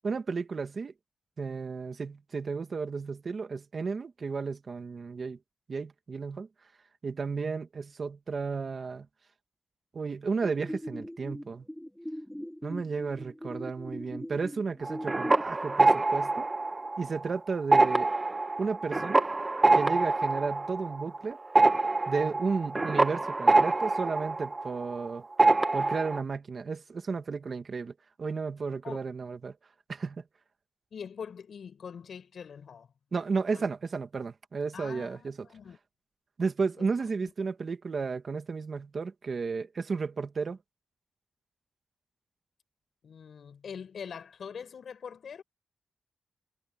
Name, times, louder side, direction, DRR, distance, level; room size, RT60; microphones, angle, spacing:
voice 1, 0.0-0.9 1.4-5.4 5.7-6.5 7.0-9.1 9.9-11.6 12.6-16.5 17.0-18.1 18.6-19.3 19.7-21.4 22.1-25.2 25.7-29.5 29.9-30.2 33.1-35.4 36.4-40.6, right 4 dB, 45° right, 1.7 m, -33 dB
sound 1, 10.4-15.4, equal, 5° left, 5.3 m, -41 dB
sound 2, 14.8-17.3 17.6-25.1 25.4-26.2, right 3 dB, 20° right, 1.1 m, -25 dB
voice 2, 30.9-32.9 33.5-33.7 34.7-35.8 36.8-36.9 37.2-37.3 43.0-45.4, left 7 dB, 70° left, 5.7 m, -43 dB
wide cardioid pair, 150°, 0 cm